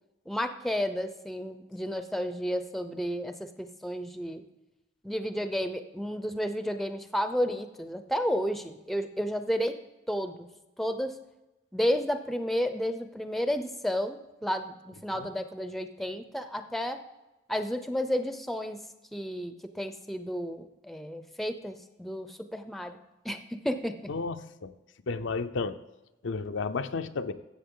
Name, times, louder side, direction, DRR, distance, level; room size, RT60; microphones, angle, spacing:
voice 1, 0.3-4.4 5.0-9.8 10.1-10.5 10.8-11.2 11.7-17.0 17.5-18.8 19.1-23.0 23.2-24.0, equal, ahead, 8 dB, 0.5 m, -32 dB
voice 2, 24.1-24.7 25.1-25.8 26.2-27.3, left 4 dB, 80° left, 9 dB, 0.6 m, -32 dB
13.0 x 7.8 x 3.8 m, 1.0 s
head